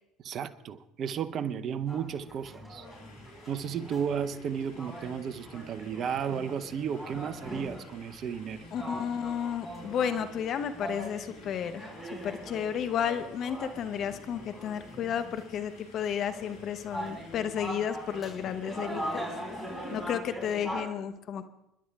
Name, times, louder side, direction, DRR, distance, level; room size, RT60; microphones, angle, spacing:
voice 1, 0.2-2.9 3.5-8.7, right 7 dB, 50° right, 13 dB, 0.7 m, -33 dB
sound 1, 1.9-20.8, equal, ahead, 4.8 m, -42 dB
sound 2, 2.8-20.2, left 3 dB, 80° left, 3.5 m, -57 dB
voice 2, 8.7-11.9 12.2-19.3 19.9-21.5, left 8 dB, 50° left, 10 dB, 1.0 m, -32 dB
30.0 x 11.0 x 2.4 m, 0.85 s
hypercardioid pair, 70°, 0 cm